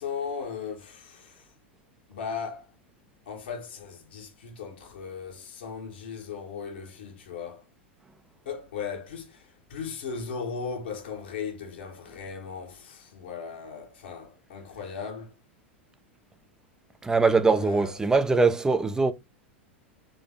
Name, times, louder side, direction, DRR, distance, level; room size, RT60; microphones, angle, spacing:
voice 1, 0.0-1.5 2.1-2.7 3.3-7.7 8.4-15.3 17.4-18.0, left 6 dB, 60° left, 1.3 m, -37 dB
voice 2, 17.0-19.1, right 4 dB, 10° right, 0.5 m, -22 dB
3.8 x 3.4 x 3.6 m
figure-of-eight pair, 90°, 6 cm